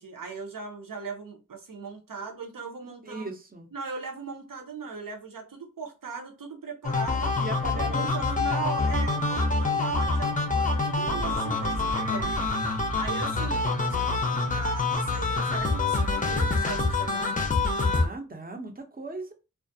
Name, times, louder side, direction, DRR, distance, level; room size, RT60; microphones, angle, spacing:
voice 1, 0.0-3.3 3.7-7.3 7.7-12.4 12.9-17.3, right 4 dB, 75° right, 2 dB, 0.7 m, -39 dB
voice 2, 3.0-3.7 7.4-8.5 17.8-19.3, right 2 dB, 25° right, 5 dB, 0.6 m, -38 dB
sound 1, 6.8-18.1, left 3 dB, 25° left, 0.5 m, -26 dB
2.3 x 2.1 x 2.6 m, 0.30 s
wide cardioid pair, 60°, 33 cm